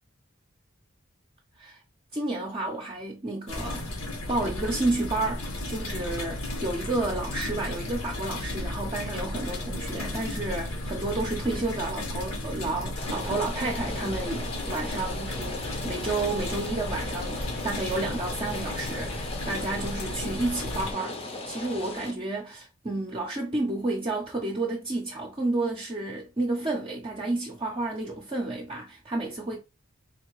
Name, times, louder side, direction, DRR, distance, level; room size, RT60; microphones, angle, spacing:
voice 1, 2.1-3.9 4.3-21.2 21.5-29.6, right 2 dB, 25° right, 0.6 m, -31 dB
sound 1, 3.5-20.9, left 1 dB, 85° left, 1.2 m, -34 dB
Rain, 13.0-22.1, left 2 dB, 30° left, 0.6 m, -38 dB
4.2 x 2.7 x 3.0 m
head